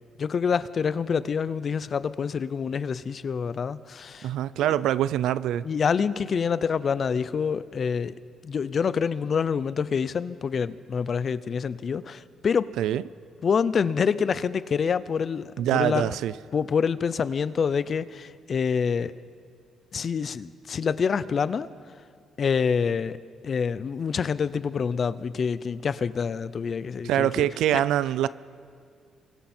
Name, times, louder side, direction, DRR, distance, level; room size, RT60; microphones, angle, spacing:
voice 1, 0.2-4.3 4.6-4.7 5.6-8.2 8.4-12.7 13.4-16.2 16.5-19.1 19.9-21.7 22.4-23.2 23.4-27.5 27.7-27.8, left 6 dB, 45° left, 0.6 m, -26 dB
voice 2, 4.2-5.7 12.8-13.0 15.6-16.3 27.0-28.3, right 12 dB, 90° right, 0.5 m, -24 dB
29.5 x 24.5 x 4.5 m
cardioid pair, 110°, 0 cm